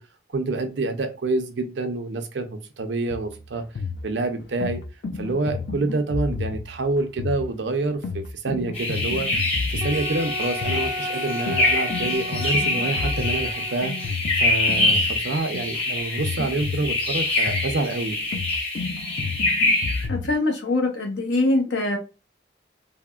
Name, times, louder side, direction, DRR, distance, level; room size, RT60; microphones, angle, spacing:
voice 1, 0.3-3.6 4.0-4.8 5.1-9.3 9.7-13.9 14.4-18.2, right 2 dB, 80° right, 7 dB, 0.5 m, -27 dB
sound 1, 3.1-20.3, left 4 dB, 65° left, 0.3 m, -32 dB
sound 2, 8.7-20.1, left 2 dB, 35° left, 0.9 m, -25 dB
Wind instrument woodwind instrument, 9.8-14.1, equal, 15° right, 0.3 m, -34 dB
voice 2, 20.1-22.0, left 2 dB, 85° left, 3 dB, 0.8 m, -23 dB
3.4 x 2.1 x 2.3 m, 0.30 s
head